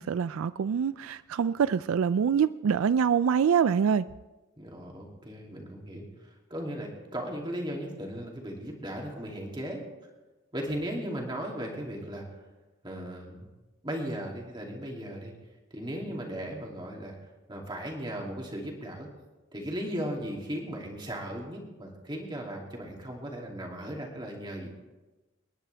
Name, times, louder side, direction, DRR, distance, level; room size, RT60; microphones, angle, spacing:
voice 1, 0.0-4.1, right 7 dB, 85° right, 0.3 m, -25 dB
voice 2, 4.6-9.8 10.5-12.3 12.8-13.5 13.8-15.3 15.7-17.2 17.5-19.1 19.5-24.7, equal, 20° right, 2.6 m, -37 dB
28.0 x 10.5 x 3.4 m
head